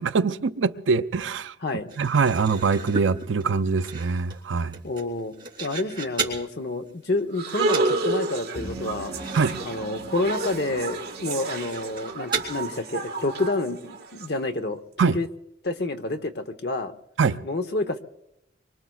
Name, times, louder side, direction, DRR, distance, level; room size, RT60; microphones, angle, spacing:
voice 1, 0.0-1.5 2.0-4.8 9.3-9.6 15.0-15.2 17.2-17.4, right 5 dB, 85° right, 0.5 m, -23 dB
sound 1, 1.9-6.4 6.9-7.2 7.5-8.0 8.2-8.3 8.7-8.8 9.1-9.5 9.7-9.8 10.3-10.4 11.1-12.5, right 5 dB, 25° right, 3.1 m, -35 dB
voice 2, 4.8-5.3 5.6-9.1 9.6-15.3 15.6-16.9 17.4-18.0, left 2 dB, 60° left, 0.9 m, -28 dB
sound 2, 7.4-14.3, right 3 dB, 55° right, 1.6 m, -30 dB
sound 3, 8.5-12.1, right 2 dB, 25° left, 6.5 m, -40 dB
25.0 x 24.0 x 2.3 m
head